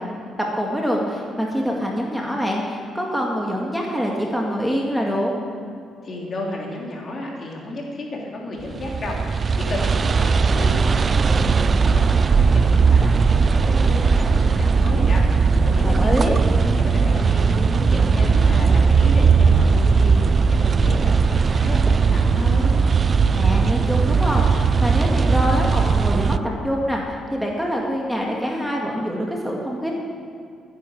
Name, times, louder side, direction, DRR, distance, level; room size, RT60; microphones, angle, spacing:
voice 1, 0.6-5.3 15.8-16.4 23.3-29.9, equal, ahead, -1 dB, 2.1 m, -25 dB
voice 2, 6.0-16.3 16.6-22.7, left 1 dB, 45° left, -2 dB, 3.2 m, -32 dB
sound 1, 8.7-26.4, right 5 dB, 40° right, 0.4 m, -18 dB
13.5 x 9.9 x 6.4 m, 2.3 s
cardioid pair, 90°, 0 cm